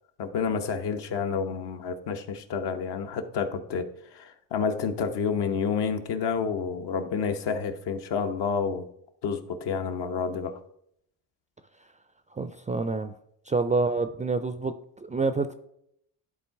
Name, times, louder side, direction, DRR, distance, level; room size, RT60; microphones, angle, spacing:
voice 1, 0.2-8.9 9.2-10.6, left 6 dB, 65° left, 6 dB, 1.1 m, -29 dB
voice 2, 12.3-13.1 13.5-15.6, right 3 dB, 20° right, 10 dB, 0.4 m, -27 dB
11.0 x 3.9 x 4.6 m, 0.73 s
cardioid pair, 85°, 45 cm